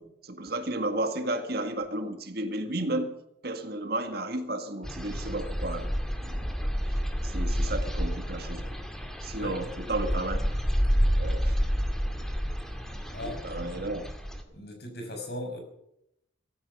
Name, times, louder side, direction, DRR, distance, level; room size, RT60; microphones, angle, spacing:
voice 1, 0.0-3.1 3.4-5.9 6.2-6.4 7.2-8.7 9.2-10.4 11.2-11.6 13.2-14.0, right 1 dB, 50° right, 7 dB, 1.8 m, -33 dB
sound 1, 4.8-14.4, equal, 5° left, 1.9 m, -29 dB
voice 2, 13.1-13.4 13.7-13.9 14.5-15.6, left 1 dB, 55° left, 3 dB, 5.6 m, -38 dB
17.0 x 14.5 x 5.5 m, 0.78 s
head